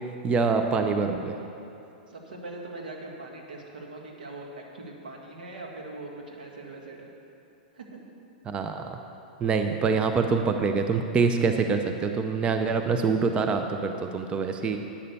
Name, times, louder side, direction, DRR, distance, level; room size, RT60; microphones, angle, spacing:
voice 1, 0.2-1.4 8.5-9.0 9.4-14.8, right 4 dB, 20° right, 6 dB, 0.6 m, -25 dB
voice 2, 2.1-7.1 7.7-8.0 9.8-10.1, right 2 dB, 90° right, 0 dB, 1.9 m, -41 dB
9.8 x 6.7 x 6.9 m, 2.7 s
hypercardioid pair, 125°, 5 cm